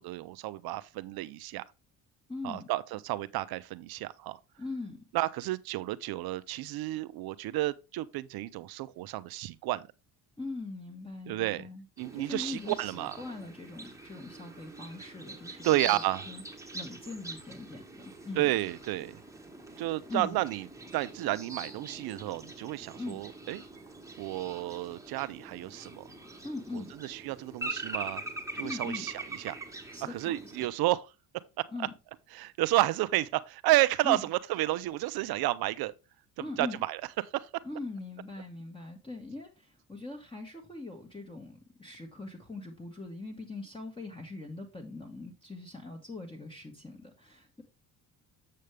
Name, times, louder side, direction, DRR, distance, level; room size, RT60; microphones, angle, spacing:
voice 1, 0.0-1.6 2.4-4.4 5.1-9.9 11.3-11.7 12.0-13.2 15.6-16.3 18.4-19.2 19.8-20.7 20.9-23.6 24.2-26.0 26.7-28.2 28.6-29.6 30.0-31.1 31.6-31.9 32.3-35.9 36.4-37.0 37.3-37.5, right 16 dB, 70° right, 0.6 m, -31 dB
voice 2, 2.3-2.7 4.6-5.0 10.4-11.8 12.1-16.4 16.7-18.5 20.1-20.4 22.9-23.2 26.4-26.9 28.6-29.1 29.9-30.7 31.7-31.9 34.0-34.2 36.4-36.8 37.6-47.6, left 3 dB, 15° left, 1.6 m, -41 dB
sound 1, 12.0-30.7, right 3 dB, 10° right, 1.4 m, -43 dB
7.6 x 6.5 x 3.3 m
supercardioid pair, 85°, 38 cm